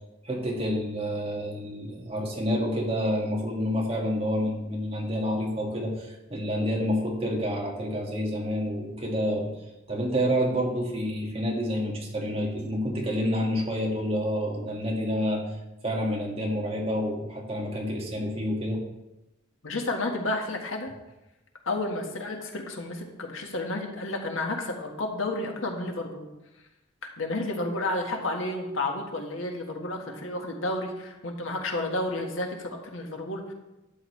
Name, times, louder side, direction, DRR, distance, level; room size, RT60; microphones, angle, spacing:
voice 1, 0.2-9.5 9.9-15.4 15.8-18.8, equal, 30° right, -1 dB, 2.0 m, -28 dB
voice 2, 19.6-20.9 21.6-26.3 27.2-33.5, left 2 dB, 80° left, 2 dB, 1.6 m, -31 dB
12.0 x 8.8 x 3.2 m, 0.97 s
head